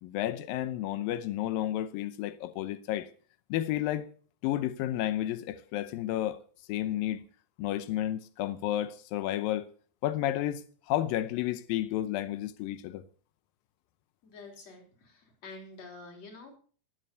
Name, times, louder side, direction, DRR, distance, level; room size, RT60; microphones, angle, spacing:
voice 1, 0.0-3.1 3.5-4.1 4.4-6.4 6.7-7.2 7.6-9.7 10.0-13.0, left 13 dB, 85° left, 2.0 m, -31 dB
voice 2, 14.2-16.6, left 3 dB, 40° left, 4.4 m, -48 dB
19.5 x 7.7 x 6.8 m
omnidirectional pair, 5.1 m